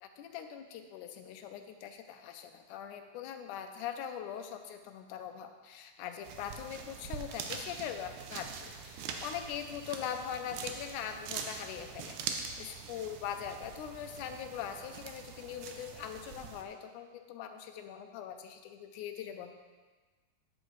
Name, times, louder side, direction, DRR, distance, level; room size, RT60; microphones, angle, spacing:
voice 1, 0.0-19.5, left 9 dB, 90° left, 7 dB, 2.2 m, -42 dB
sound 1, 6.2-16.6, right 6 dB, 80° right, 2.1 m, -43 dB
9.5 x 7.8 x 3.1 m, 1.4 s
omnidirectional pair, 3.5 m